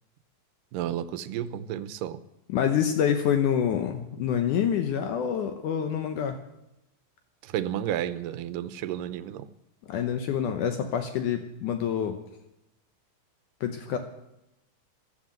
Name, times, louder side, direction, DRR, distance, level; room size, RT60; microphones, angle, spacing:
voice 1, 0.7-2.2 7.4-9.5, right 11 dB, 80° right, 14 dB, 2.3 m, -32 dB
voice 2, 2.5-6.4 9.9-12.2 13.6-14.0, left 8 dB, 70° left, 6 dB, 2.3 m, -27 dB
15.0 x 11.5 x 7.8 m, 0.89 s
omnidirectional pair, 4.0 m